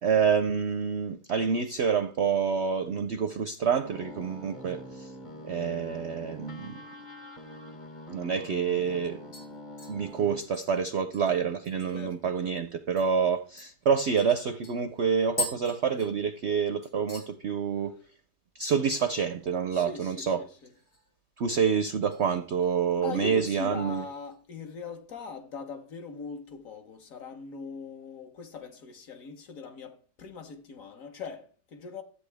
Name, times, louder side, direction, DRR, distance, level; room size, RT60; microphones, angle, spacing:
voice 1, 0.0-5.1 5.4-6.8 8.1-9.2 9.9-17.9 18.5-20.4 21.4-24.0, right 6 dB, 65° right, 0.6 m, -27 dB
Industrial sound efect, 3.8-10.4, left 1 dB, 25° left, 0.8 m, -44 dB
sound 1, 9.3-12.2 12.5-12.6 13.0-13.1 13.6-16.6 16.8-17.3 17.7-18.1 18.3-18.4 20.5-21.2 21.5-22.2 22.6-22.9 23.5-24.4 24.7-24.8, left 3 dB, 90° left, 6.9 m, -42 dB
voice 2, 11.9-12.3 13.2-13.3 19.7-20.7 23.0-32.0, left 4 dB, 55° left, 1.3 m, -40 dB
12.5 x 8.3 x 3.4 m
omnidirectional pair, 1.8 m